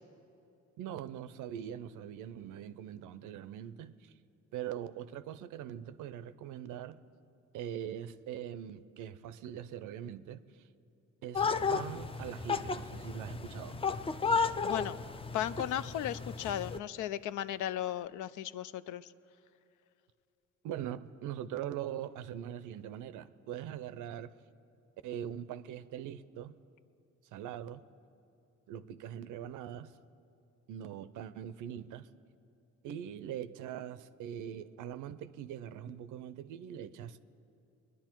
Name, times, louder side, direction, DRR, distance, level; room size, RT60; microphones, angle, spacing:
voice 1, 0.8-4.1 4.5-7.0 7.5-10.6 11.2-13.8 20.6-24.3 25.0-26.6 27.3-27.8 28.7-30.0 30.7-32.1 32.8-37.2, right 10 dB, 90° right, 0.6 m, -42 dB
sound 1, 11.3-16.8, left 5 dB, 20° left, 0.4 m, -34 dB
voice 2, 14.6-15.0 15.3-19.1, left 11 dB, 85° left, 0.5 m, -36 dB
22.5 x 10.5 x 4.5 m
cardioid pair, 90°, 30 cm